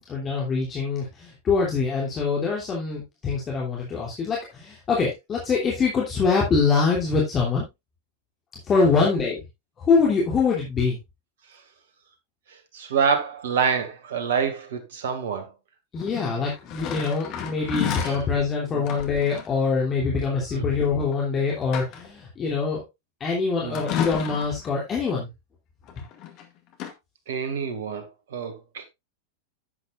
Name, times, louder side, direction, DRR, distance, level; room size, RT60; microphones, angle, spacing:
voice 1, 0.1-7.6 8.7-9.4 9.8-11.0 15.9-22.8 23.2-25.3, left 4 dB, 25° left, 3.0 m, -24 dB
voice 2, 12.7-15.5 18.0-18.2 18.7-18.9 20.5-20.7 23.6-23.8 27.3-28.9, right 6 dB, 60° right, 2.1 m, -27 dB
sound 1, 16.0-18.3 18.8-19.5 21.0-21.1 21.5-22.2 23.7-24.7 25.9-26.5 26.7-26.9, left 9 dB, 40° left, 2.0 m, -32 dB
10.5 x 8.6 x 2.5 m
figure-of-eight pair, 90°, 0 cm